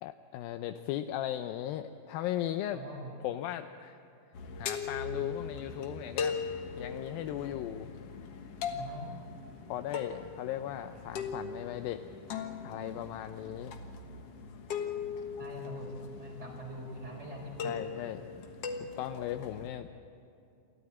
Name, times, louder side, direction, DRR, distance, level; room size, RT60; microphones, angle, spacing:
voice 1, 0.0-2.8 3.2-4.0 4.6-6.4 6.8-7.9 8.6-8.8 9.7-12.0 12.6-13.7 17.6-18.2 18.8-19.9, left 12 dB, 80° left, 9 dB, 2.3 m, -37 dB
voice 2, 2.7-3.1 8.7-9.4 15.4-15.9 16.2-17.9, equal, 15° right, 1 dB, 4.3 m, -44 dB
sound 1, 4.3-19.7, left 5 dB, 55° left, 1.8 m, -40 dB
28.5 x 13.5 x 8.6 m, 2.7 s
omnidirectional pair, 4.3 m